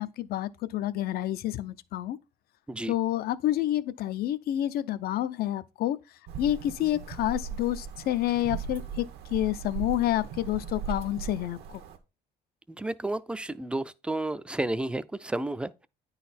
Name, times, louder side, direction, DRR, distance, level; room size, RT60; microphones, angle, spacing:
voice 1, 0.0-2.2 2.9-6.0 6.4-9.0 9.3-11.6, left 13 dB, 65° left, 0.5 m, -28 dB
sound 1, 6.3-12.0, right 7 dB, 80° right, 1.0 m, -38 dB
voice 2, 12.8-15.9, right 2 dB, 5° right, 0.4 m, -32 dB
9.4 x 4.0 x 4.2 m
cardioid pair, 110°, 17 cm